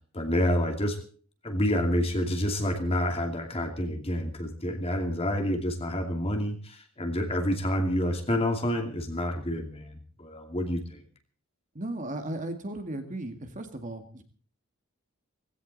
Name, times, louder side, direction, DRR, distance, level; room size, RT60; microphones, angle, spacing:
voice 1, 0.1-1.0 1.4-11.0, left 1 dB, 25° left, 5 dB, 2.5 m, -28 dB
voice 2, 11.7-14.2, right 1 dB, 35° right, 6 dB, 2.1 m, -36 dB
18.0 x 16.5 x 4.1 m, 0.43 s
head